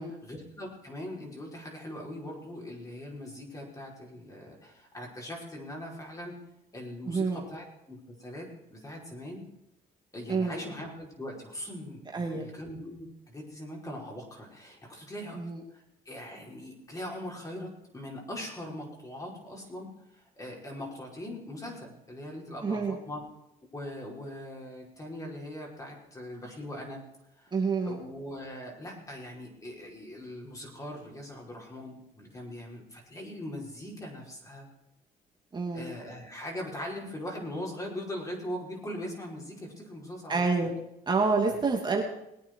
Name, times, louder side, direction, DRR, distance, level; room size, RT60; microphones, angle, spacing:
voice 1, 0.2-6.4 6.7-9.4 10.1-15.4 15.7-23.2 23.7-27.0 27.4-27.5 27.9-34.7 35.7-40.7 41.5-41.6, left 1 dB, 20° left, -1 dB, 5.3 m, -41 dB
voice 2, 7.0-7.4 10.3-10.6 12.1-12.5 15.3-15.6 22.6-22.9 27.5-28.0 35.5-35.9 40.3-40.7 41.1-42.0, right 4 dB, 25° right, 0 dB, 2.6 m, -28 dB
21.5 x 9.2 x 4.7 m, 0.86 s
cardioid pair, 110°, 17 cm